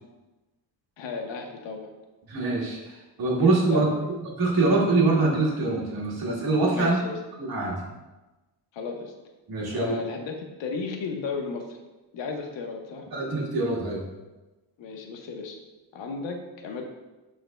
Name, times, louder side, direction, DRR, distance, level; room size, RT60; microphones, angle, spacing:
voice 1, 1.0-1.9 3.7-4.1 6.7-7.2 8.7-9.1 9.7-11.8 12.1-13.0 14.8-15.6 15.9-16.8, left 4 dB, 85° left, 3 dB, 1.1 m, -34 dB
voice 2, 2.3-3.9 4.4-7.0 7.4-7.9 9.5-10.0 13.1-14.1, right 3 dB, 55° right, -4 dB, 2.0 m, -24 dB
11.5 x 3.8 x 2.3 m, 1.1 s
cardioid pair, 155°, 44 cm